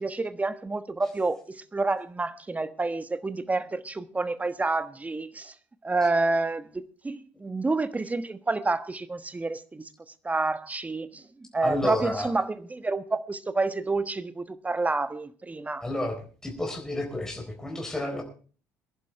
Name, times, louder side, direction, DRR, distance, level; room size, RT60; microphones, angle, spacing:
voice 1, 0.0-5.5 5.8-9.9 10.2-11.2 11.5-15.8, right 3 dB, 20° right, 1.2 m, -29 dB
voice 2, 11.6-12.3 15.8-16.1 16.4-18.2, left 1 dB, 5° left, 4.1 m, -30 dB
22.5 x 11.0 x 3.4 m
hypercardioid pair, 60°, 8 cm